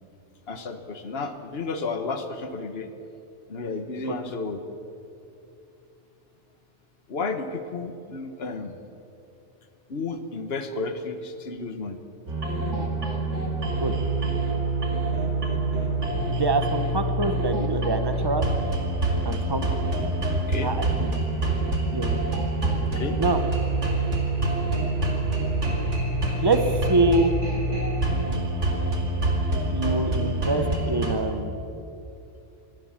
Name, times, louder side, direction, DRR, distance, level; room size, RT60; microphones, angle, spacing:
voice 1, 0.5-2.9 3.5-4.6 7.1-8.7 9.9-12.0 20.5-20.7 22.8-23.2, left 3 dB, 55° left, 8 dB, 1.6 m, -32 dB
sound 1, 12.3-31.1, right 2 dB, 80° right, 2.9 m, -26 dB
voice 2, 16.3-18.5 19.2-19.7 20.6-21.1 21.9-22.1 23.2-23.4 26.4-27.3 29.7-31.6, right 2 dB, 20° right, 8 dB, 1.4 m, -25 dB
25.5 x 17.0 x 7.5 m, 2.8 s
omnidirectional pair, 1.2 m